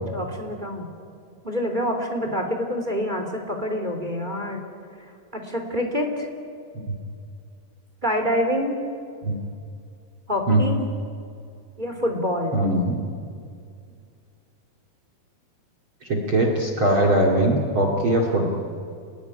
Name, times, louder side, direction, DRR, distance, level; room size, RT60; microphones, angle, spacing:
voice 1, 0.1-0.9 1.4-4.6 5.3-6.3 8.0-8.8 10.3-10.8 11.8-12.6, equal, 15° right, 3 dB, 2.5 m, -26 dB
voice 2, 12.5-13.0 16.1-18.5, right 1 dB, 35° right, 1 dB, 2.8 m, -21 dB
28.5 x 20.0 x 10.0 m, 2.3 s
omnidirectional pair, 4.6 m